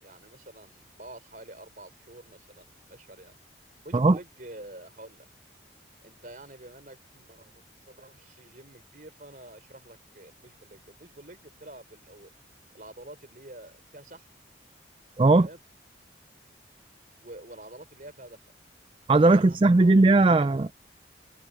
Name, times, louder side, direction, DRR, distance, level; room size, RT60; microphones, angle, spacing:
voice 1, 0.0-3.4 3.8-5.3 6.0-12.3 12.7-14.3 15.3-15.6 17.2-18.4 19.2-20.5, right 1 dB, 45° right, 4.0 m, -48 dB
voice 2, 15.2-15.5 19.1-20.8, right 2 dB, 30° right, 0.4 m, -18 dB
head